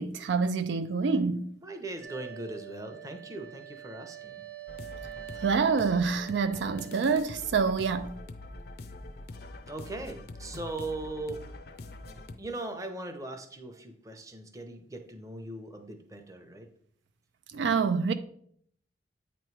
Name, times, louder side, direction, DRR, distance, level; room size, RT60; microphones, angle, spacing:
voice 1, 0.0-1.5 5.4-8.2 17.5-18.1, right 5 dB, 75° right, 0.4 m, -27 dB
voice 2, 1.6-4.4 9.7-11.4 12.4-16.7, right 2 dB, 20° right, 0.7 m, -39 dB
sound 1, 2.0-7.1, right 12 dB, 45° right, 0.9 m, -45 dB
sound 2, 4.7-12.4, left 2 dB, 55° left, 0.5 m, -44 dB
8.7 x 3.1 x 4.6 m
head